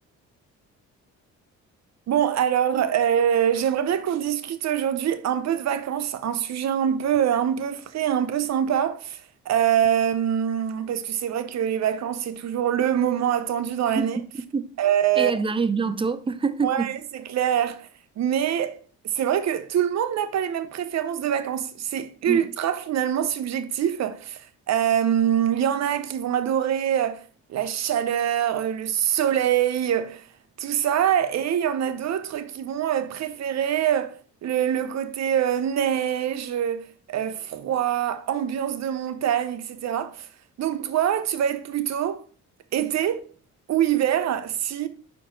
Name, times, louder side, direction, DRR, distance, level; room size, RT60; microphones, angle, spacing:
voice 1, 2.1-14.2 14.8-15.3 16.6-17.9 18.2-30.3 30.6-40.3 40.6-42.3 42.7-43.2 43.7-44.9, right 9 dB, 60° right, 0.7 m, -24 dB
voice 2, 15.2-16.9 22.3-22.4, right 5 dB, 15° right, 0.5 m, -25 dB
5.6 x 4.3 x 4.4 m
cardioid pair, 90°, 30 cm